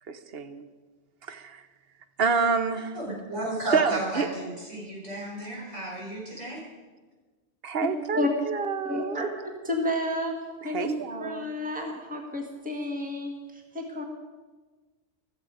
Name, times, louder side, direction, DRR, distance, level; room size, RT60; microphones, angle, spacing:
voice 1, 0.1-0.7 1.3-1.6 2.2-3.0 3.7-4.3 7.6-9.2 10.7-11.4, right 5 dB, 60° right, 10 dB, 1.1 m, -28 dB
voice 2, 2.9-6.6, right 1 dB, 85° right, -4 dB, 5.0 m, -33 dB
voice 3, 8.8-9.3 9.6-10.3 10.6-10.9 11.2-14.0, left 1 dB, 5° right, 1 dB, 1.6 m, -31 dB
15.0 x 13.5 x 5.0 m, 1.3 s
omnidirectional pair, 1.2 m